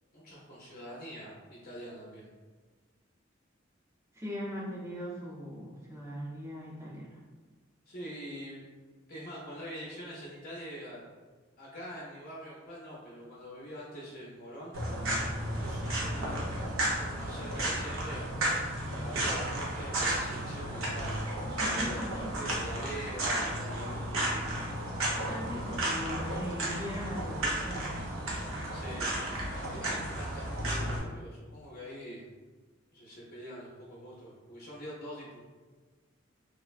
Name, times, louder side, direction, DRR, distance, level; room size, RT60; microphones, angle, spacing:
voice 1, 0.1-2.3 7.9-8.6 9.1-11.0 11.6-14.8 15.6-16.4 17.0-18.2 19.0-24.4 25.1-25.8 28.7-29.2 29.5-32.2 32.9-35.4, equal, 50° left, -5 dB, 0.5 m, -44 dB
voice 2, 4.1-7.2 21.6-22.6 25.0-28.1, left 1 dB, 15° right, -4 dB, 0.6 m, -40 dB
sound 1, 14.7-31.0, right 1 dB, 90° right, 0.7 m, -33 dB
3.2 x 2.1 x 2.3 m, 1.4 s
head